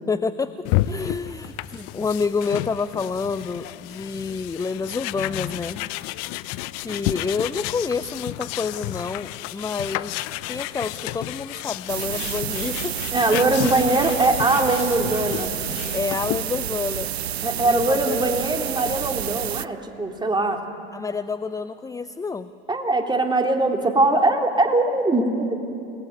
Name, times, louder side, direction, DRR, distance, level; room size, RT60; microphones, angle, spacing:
voice 1, 0.1-5.8 6.8-10.2 10.5-12.9 15.3-15.5 15.9-17.1 17.7-18.3 20.9-22.6, left 4 dB, 10° left, 13 dB, 0.6 m, -28 dB
sound 1, 0.6-16.6, left 16 dB, 55° left, 0.7 m, -31 dB
sound 2, 11.9-19.7, right 10 dB, 85° right, 0.6 m, -29 dB
voice 2, 13.1-15.5 17.4-20.6 22.7-25.6, right 2 dB, 15° right, 3 dB, 3.1 m, -21 dB
29.0 x 19.0 x 9.4 m, 2.6 s
hypercardioid pair, 75°, 31 cm